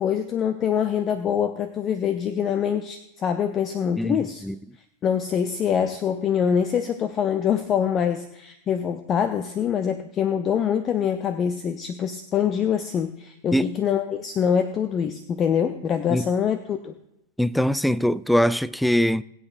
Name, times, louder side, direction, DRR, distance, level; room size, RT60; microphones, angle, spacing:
voice 1, 0.0-4.4 5.0-17.0, left 8 dB, 30° left, 0.7 m, -24 dB
voice 2, 4.0-4.6 13.5-13.7 16.1-16.3 17.4-19.2, equal, ahead, 0.3 m, -22 dB
21.0 x 8.6 x 2.6 m
figure-of-eight pair, 90°, 0 cm